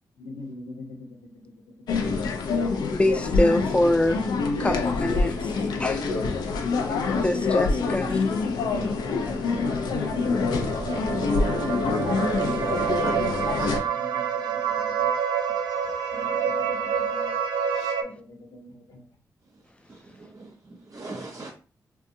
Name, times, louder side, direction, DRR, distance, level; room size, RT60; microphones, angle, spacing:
voice 1, 0.2-2.0 4.6-5.9 7.8-10.5 11.4-12.9 13.6-15.1 16.1-17.3 18.0-19.1, left 3 dB, 70° left, 0.8 m, -41 dB
sound 1, 1.9-13.8, left 4 dB, 85° left, 0.4 m, -26 dB
voice 2, 2.9-4.2 4.6-5.3 5.8-6.1 7.2-8.1, left 1 dB, 15° left, 0.5 m, -24 dB
sound 2, 8.7-18.0, right 7 dB, 85° right, 0.4 m, -28 dB
voice 3, 19.5-21.5, right 2 dB, 45° right, 0.6 m, -42 dB
2.6 x 2.3 x 2.6 m
cardioid pair, 55°, 7 cm